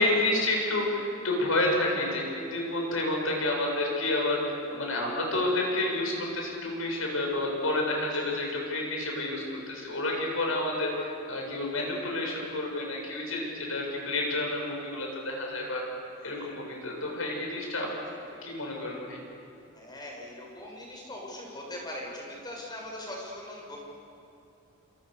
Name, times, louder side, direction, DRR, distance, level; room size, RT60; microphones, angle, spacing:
voice 1, 0.0-15.8 16.2-17.9 18.4-19.2, left 2 dB, 85° left, 0 dB, 8.0 m, -29 dB
voice 2, 16.2-16.5 19.7-23.8, left 1 dB, 20° left, -1 dB, 7.1 m, -40 dB
28.5 x 27.0 x 7.0 m, 2.9 s
head